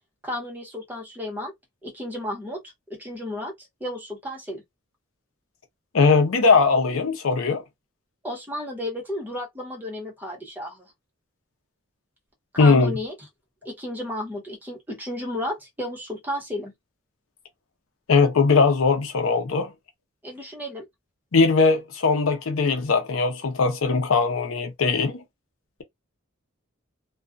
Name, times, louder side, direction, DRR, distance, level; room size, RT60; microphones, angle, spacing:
voice 1, 0.2-1.5 1.8-2.6 2.9-4.6 8.2-10.9 12.5-13.1 13.6-16.7 20.2-20.8, left 1 dB, 10° right, 1.0 m, -33 dB
voice 2, 5.9-7.6 12.6-13.0 18.1-19.7 21.3-25.2, left 4 dB, 70° left, 0.6 m, -20 dB
2.3 x 2.2 x 2.5 m
head